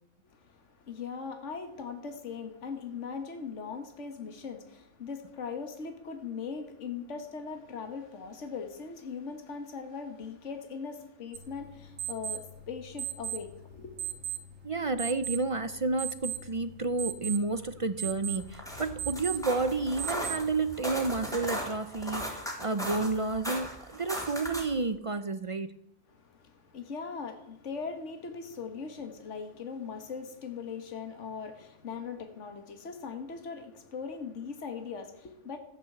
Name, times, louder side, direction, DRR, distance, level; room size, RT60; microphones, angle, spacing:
voice 1, 0.2-14.0 26.1-35.6, left 5 dB, 65° left, 1.8 m, -40 dB
sound 1, 11.3-20.7, right 9 dB, 80° right, 2.0 m, -39 dB
voice 2, 14.6-25.7, right 3 dB, 45° right, 0.4 m, -31 dB
sound 2, 18.4-24.8, equal, ahead, 3.4 m, -37 dB
14.5 x 8.4 x 7.9 m
omnidirectional pair, 1.3 m